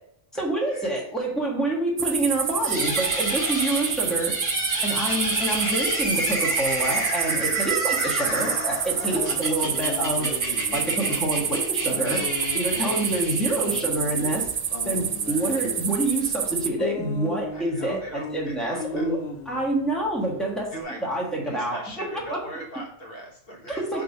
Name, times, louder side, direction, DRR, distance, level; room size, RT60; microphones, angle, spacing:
voice 1, 0.3-10.3 10.7-12.2 12.5-14.5 14.8-20.7 21.0-22.4 23.7-24.0, right 1 dB, ahead, -3 dB, 1.5 m, -27 dB
sound 1, 2.0-16.7, right 7 dB, 70° right, 0.3 m, -28 dB
sound 2, 2.6-13.9, right 1 dB, 15° right, 2.0 m, -30 dB
sound 3, 8.3-20.8, left 5 dB, 75° left, 1.4 m, -37 dB
voice 2, 9.0-9.5 17.5-19.1 20.7-21.1 21.4-24.0, right 1 dB, 55° left, -1 dB, 1.3 m, -40 dB
5.6 x 3.6 x 5.4 m, 0.71 s
omnidirectional pair, 1.2 m